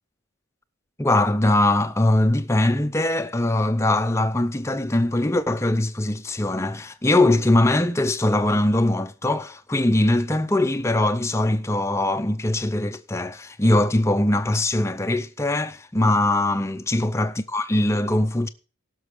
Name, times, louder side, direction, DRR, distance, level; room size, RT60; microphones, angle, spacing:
voice 1, 1.0-18.5, left 1 dB, 10° left, 0.5 m, -21 dB
16.0 x 6.2 x 5.0 m
head